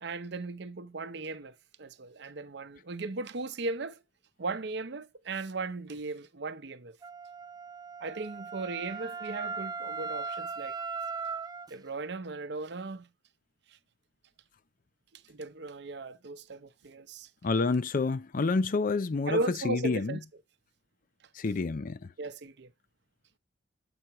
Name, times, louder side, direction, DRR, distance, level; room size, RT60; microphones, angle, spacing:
voice 1, 0.0-4.0 4.4-7.0 8.0-10.8 11.7-13.1 15.1-17.3 19.3-20.2 22.2-22.7, right 3 dB, 65° right, 0.7 m, -37 dB
Wind instrument woodwind instrument, 7.0-11.7, right 4 dB, 20° right, 0.3 m, -38 dB
voice 2, 17.4-19.4 19.6-20.2 21.4-22.0, left 3 dB, 50° left, 0.5 m, -28 dB
7.9 x 5.7 x 3.0 m
head